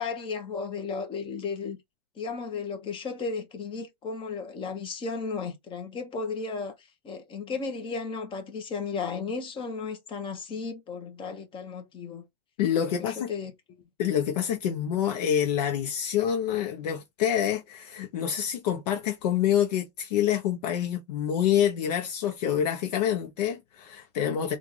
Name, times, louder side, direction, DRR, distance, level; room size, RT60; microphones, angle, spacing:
voice 1, 0.0-1.8 2.2-12.3 12.7-13.8, left 5 dB, 25° left, 1.1 m, -34 dB
voice 2, 12.6-13.3 14.0-24.6, left 9 dB, 70° left, 0.8 m, -27 dB
3.6 x 2.5 x 3.3 m
supercardioid pair, 130°, 21 cm